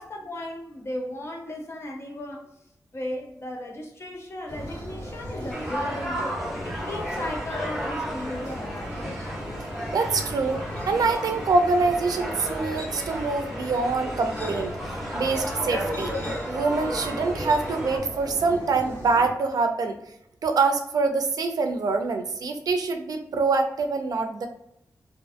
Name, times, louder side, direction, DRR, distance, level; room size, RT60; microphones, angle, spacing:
voice 1, 0.0-2.7 2.9-9.0, left 1 dB, 40° left, 0.6 m, -36 dB
sound 1, 4.5-19.3, equal, 70° left, 1.4 m, -37 dB
sound 2, 5.5-18.0, equal, ahead, 0.6 m, -34 dB
voice 2, 9.9-10.6 10.9-14.7 15.1-16.1 16.5-20.0 20.4-24.5, right 4 dB, 80° right, 0.4 m, -25 dB
2.5 x 2.5 x 2.4 m
wide cardioid pair, 150°, 6 cm